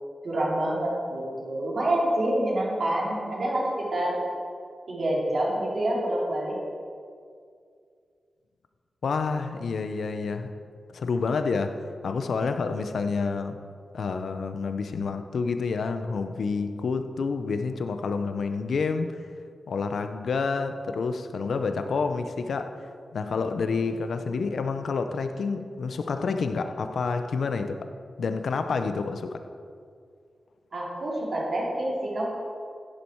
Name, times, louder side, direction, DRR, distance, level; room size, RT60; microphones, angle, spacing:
voice 1, 0.2-4.2 4.9-6.6 30.7-32.2, right 1 dB, 50° right, 3.2 m, -27 dB
voice 2, 9.0-10.5 10.9-11.8 12.0-13.6 13.9-19.2 19.7-22.7 23.1-27.8 28.2-29.4, left 4 dB, 80° left, 0.7 m, -28 dB
11.0 x 10.5 x 4.6 m
wide cardioid pair, 175°, 0 cm